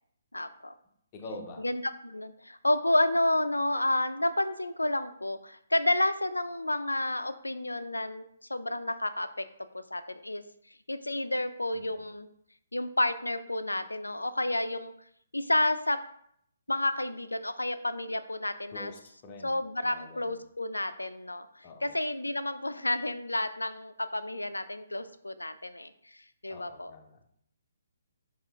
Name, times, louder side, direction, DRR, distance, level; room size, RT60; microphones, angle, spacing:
voice 1, 0.3-0.7 1.6-8.2 8.5-9.5 9.7-10.4 10.9-12.3 12.7-14.9 15.3-16.0 16.7-18.9 19.4-26.9, left 1 dB, 85° left, 11 dB, 0.3 m, -30 dB
voice 2, 1.1-1.6 11.7-12.1 18.7-19.5 19.8-20.4 21.6-22.0 26.5-27.2, left 2 dB, 30° left, 2 dB, 0.7 m, -45 dB
4.7 x 2.7 x 3.6 m, 0.69 s
figure-of-eight pair, 135°, 0 cm